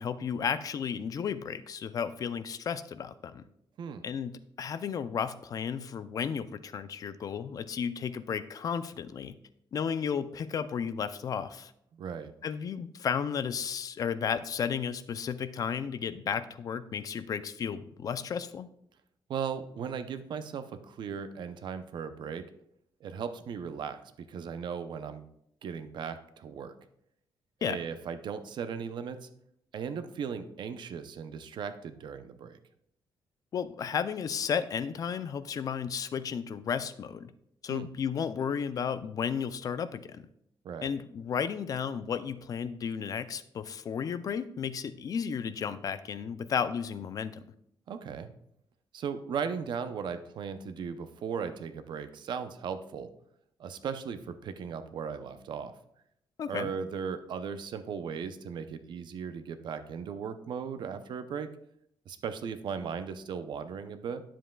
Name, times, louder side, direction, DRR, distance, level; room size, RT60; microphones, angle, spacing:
voice 1, 0.0-3.5 4.0-9.4 9.7-11.7 12.4-18.7 27.6-27.8 33.5-37.3 37.6-40.3 40.8-47.4 56.4-56.7, left 7 dB, 45° left, 12 dB, 0.4 m, -33 dB
voice 2, 11.9-12.3 19.3-22.4 23.0-24.0 24.3-25.3 25.6-26.7 27.6-29.3 29.7-32.6 37.7-37.9 40.6-40.9 47.9-48.3 48.9-53.1 53.6-55.7 56.5-61.5 62.1-64.2, right 6 dB, 65° right, 10 dB, 0.6 m, -37 dB
9.9 x 7.4 x 2.3 m, 0.73 s
wide cardioid pair, 150°, 9 cm